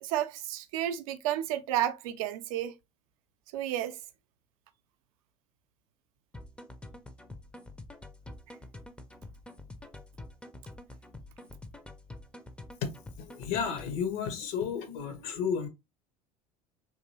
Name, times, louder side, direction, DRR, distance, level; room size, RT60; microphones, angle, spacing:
voice 1, 0.0-2.7 3.5-4.0, right 12 dB, 60° right, 0.6 m, -31 dB
sound 1, 6.3-14.0, left 2 dB, 5° left, 0.6 m, -47 dB
voice 2, 12.8-15.7, left 7 dB, 55° left, 0.9 m, -33 dB
3.9 x 2.9 x 2.7 m
figure-of-eight pair, 70°, 20 cm